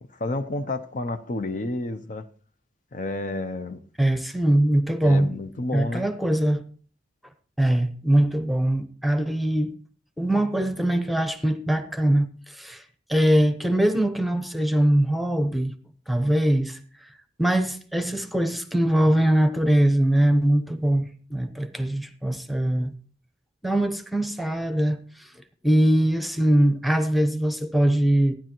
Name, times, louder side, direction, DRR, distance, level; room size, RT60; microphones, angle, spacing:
voice 1, 0.0-2.3 2.9-3.8 5.0-6.1, left 2 dB, 45° left, 0.6 m, -30 dB
voice 2, 4.0-5.3 5.7-6.6 7.6-9.7 10.2-12.8 13.1-15.7 16.1-17.1 17.4-22.9 23.6-25.3 25.6-28.3, right 1 dB, ahead, 0.8 m, -22 dB
15.0 x 10.0 x 3.0 m
head